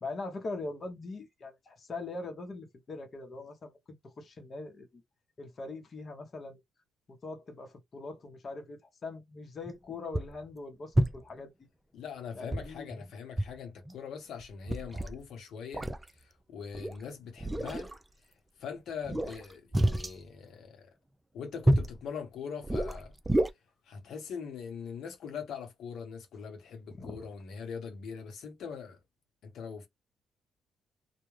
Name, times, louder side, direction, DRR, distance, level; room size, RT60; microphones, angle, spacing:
voice 1, 0.0-3.7 4.0-5.0 5.4-6.6 7.2-11.5 12.4-12.9 27.0-27.3, left 3 dB, 40° left, 0.8 m, -41 dB
sound 1, 9.7-9.8 10.1-10.4 10.9-11.4 12.5-13.0 13.4-13.6 13.9-14.0 14.4-15.2 15.7-16.0 16.7-16.9 17.4-18.0 19.0-20.1 21.6-22.0 22.6-23.5, right 1 dB, 15° right, 0.4 m, -29 dB
voice 2, 11.9-15.9 16.1-17.9 18.6-20.9 21.3-23.1 23.9-29.0 29.4-29.9, left 6 dB, 75° left, 0.8 m, -42 dB
2.3 x 2.1 x 3.1 m
cardioid pair, 90°, 0 cm